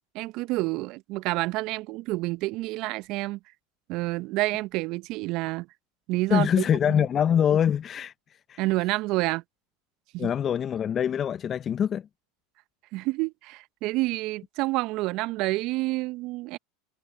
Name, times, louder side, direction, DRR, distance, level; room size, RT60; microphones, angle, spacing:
voice 1, 0.1-3.4 3.9-5.7 6.1-7.0 8.6-9.4 10.1-10.3 12.9-16.6, right 20 dB, 55° right, 0.9 m, -28 dB
voice 2, 6.3-8.1 8.5-8.6 10.2-12.1, left 8 dB, 35° left, 0.9 m, -24 dB
hypercardioid pair, 85°, 0 cm